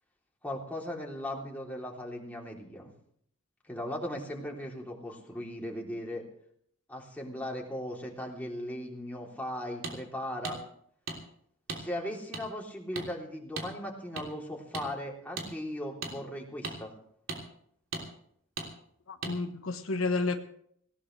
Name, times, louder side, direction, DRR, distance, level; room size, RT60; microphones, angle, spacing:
voice 1, 0.4-2.9 3.7-6.2 6.9-10.6 11.7-16.9, left 1 dB, 10° left, -2 dB, 3.3 m, -38 dB
sound 1, 9.8-10.0 10.4-10.6 11.1-11.2 11.7-11.8 12.3-12.4 12.9-13.1 13.6-13.7 14.2-14.3 14.7-14.9 15.4-15.5 16.0-16.1 16.6-16.8 17.3-17.4 17.9-18.0 18.6-18.7 19.2-19.3, right 3 dB, 75° right, 3.1 m, -36 dB
voice 2, 19.1-20.4, left 3 dB, 85° left, 6 dB, 1.3 m, -31 dB
19.0 x 18.0 x 3.3 m, 0.66 s
head